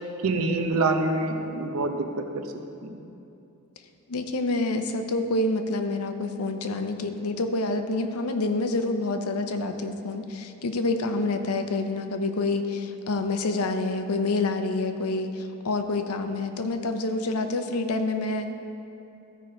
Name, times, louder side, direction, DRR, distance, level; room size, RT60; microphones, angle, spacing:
voice 1, 0.2-2.5 2.8-3.0, right 2 dB, 75° right, 5 dB, 0.7 m, -26 dB
voice 2, 4.1-18.5, left 2 dB, 85° left, 7 dB, 0.6 m, -27 dB
13.5 x 5.0 x 4.4 m, 2.7 s
head